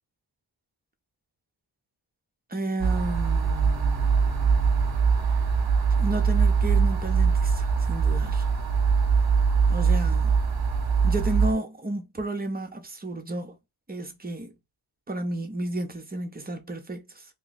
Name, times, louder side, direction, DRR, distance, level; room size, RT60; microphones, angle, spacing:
voice 1, 2.5-5.0 5.3-5.4 6.0-8.5 9.7-10.4 11.0-13.6 13.9-14.5 15.1-17.3, right 2 dB, 20° right, 0.7 m, -32 dB
sound 1, 2.8-11.5, right 5 dB, 50° right, 1.1 m, -22 dB
2.9 x 2.3 x 4.0 m
wide cardioid pair, 75°, 47 cm